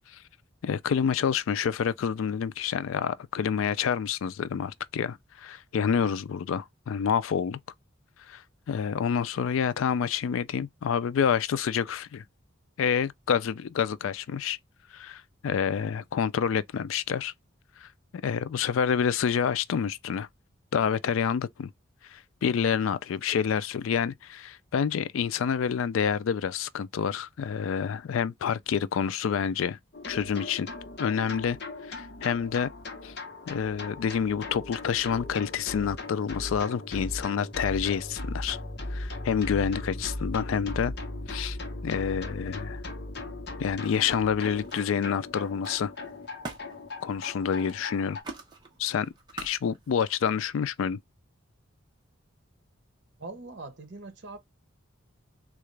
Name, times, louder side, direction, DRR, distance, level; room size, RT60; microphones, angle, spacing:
voice 1, 0.6-7.6 8.3-12.2 12.8-14.6 14.9-17.3 17.8-17.9 18.2-20.3 20.7-21.7 22.1-29.8 30.1-30.7 31.0-31.6 31.9-32.7 33.0-33.1 33.5-38.6 38.9-40.9 41.3-41.6 41.8-42.8 43.6-45.9 47.0-48.2 48.8-51.0, left 7 dB, 75° left, 0.3 m, -28 dB
sound 1, 29.9-48.2, left 2 dB, 50° left, 0.9 m, -38 dB
Camera, 44.6-50.1, right 2 dB, 20° right, 0.8 m, -46 dB
voice 2, 53.2-54.4, right 3 dB, 55° right, 1.0 m, -42 dB
3.7 x 2.4 x 3.2 m
head